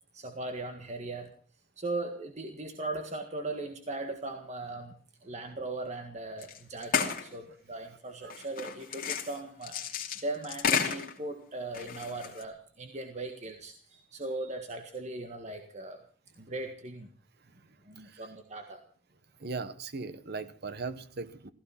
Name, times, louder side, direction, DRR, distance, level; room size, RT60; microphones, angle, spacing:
voice 1, 0.1-1.3 1.8-16.0 16.4-17.1 17.9-18.8, right 2 dB, 40° right, 1.8 m, -39 dB
sound 1, 6.4-6.6 6.8-7.3 8.3-11.2 11.7-12.4, left 6 dB, 50° left, 2.6 m, -32 dB
voice 2, 18.0-18.3 19.4-21.5, right 4 dB, 60° right, 1.2 m, -39 dB
16.0 x 15.5 x 5.8 m
head